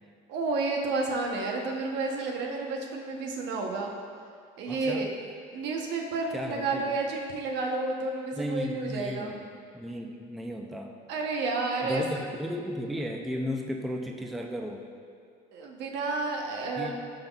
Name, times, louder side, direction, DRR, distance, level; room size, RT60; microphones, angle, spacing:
voice 1, 0.3-3.9 4.6-5.1 5.5-9.3 11.1-12.0 15.5-16.9, right 3 dB, 70° right, 1 dB, 0.9 m, -31 dB
voice 2, 4.7-5.1 6.3-7.0 8.3-10.9 11.8-14.8 16.8-17.0, equal, ahead, 2 dB, 0.4 m, -35 dB
11.0 x 3.9 x 2.3 m, 2.2 s
cardioid pair, 105°, 19 cm